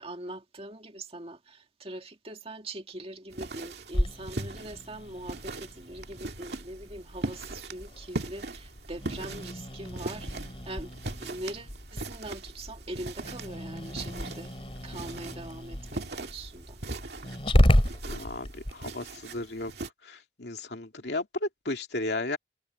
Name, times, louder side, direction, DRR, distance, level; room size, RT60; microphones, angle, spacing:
voice 1, 0.0-10.9 11.2-14.5 14.8-16.8, right 1 dB, 35° right, 2.3 m, -42 dB
sound 1, 3.3-19.9, right 2 dB, 65° right, 2.3 m, -40 dB
Growling, 3.9-18.7, equal, 35° left, 2.7 m, -32 dB
voice 2, 18.1-19.7 20.0-22.4, left 2 dB, 70° left, 2.6 m, -34 dB
head